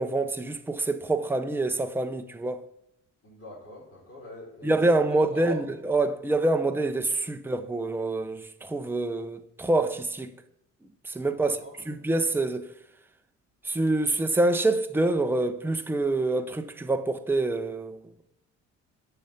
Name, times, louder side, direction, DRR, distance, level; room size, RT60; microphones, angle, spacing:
voice 1, 0.0-2.6 4.6-10.3 11.0-11.6 11.9-12.7 13.6-18.0, right 2 dB, 5° right, 0.6 m, -26 dB
voice 2, 3.2-4.8 5.1-5.6 11.2-11.7, left 2 dB, 50° left, 3.9 m, -44 dB
8.8 x 5.6 x 5.7 m
cardioid pair, 90°, 30 cm